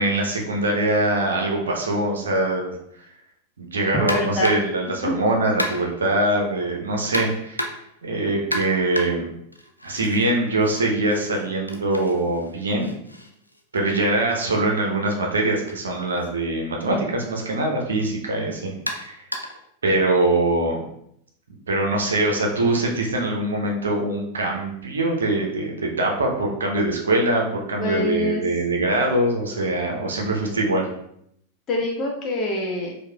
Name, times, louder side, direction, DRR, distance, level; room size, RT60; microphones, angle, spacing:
voice 1, 0.0-2.7 3.6-7.6 8.0-9.2 9.8-12.9 13.7-19.2 19.8-20.8 21.7-30.9, right 2 dB, 70° right, 1 dB, 0.7 m, -23 dB
voice 2, 4.0-4.5 5.0-5.2 18.4-18.5 27.8-28.4 31.7-32.9, left 2 dB, 30° left, -1 dB, 0.9 m, -25 dB
sound 1, 4.1-4.8 5.6-6.1 7.1-8.0 8.5-10.3 10.6-14.5 15.5-15.7 16.2-16.3 17.2-17.3 18.9-19.7, left 1 dB, 90° left, 0.3 m, -32 dB
4.7 x 2.3 x 2.2 m, 0.73 s
figure-of-eight pair, 90°, 0 cm